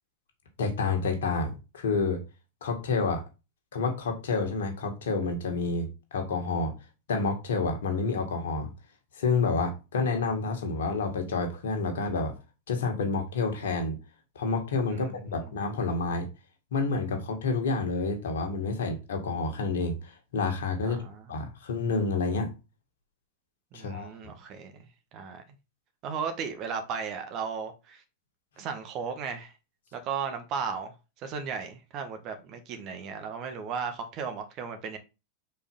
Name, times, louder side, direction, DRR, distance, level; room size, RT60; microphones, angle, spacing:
voice 1, 0.6-2.2 2.6-3.2 3.7-6.7 7.1-8.7 9.2-12.3 12.7-14.0 14.4-16.3 16.7-21.0 21.3-22.5 23.7-24.1, left 4 dB, 60° left, 2.0 m, -29 dB
voice 2, 14.9-15.5 20.8-21.2 23.7-24.9 25.1-25.4 26.0-28.0 28.6-29.5 29.9-35.0, right 6 dB, 35° right, 1.5 m, -35 dB
5.3 x 4.5 x 5.4 m
figure-of-eight pair, 90°, 0 cm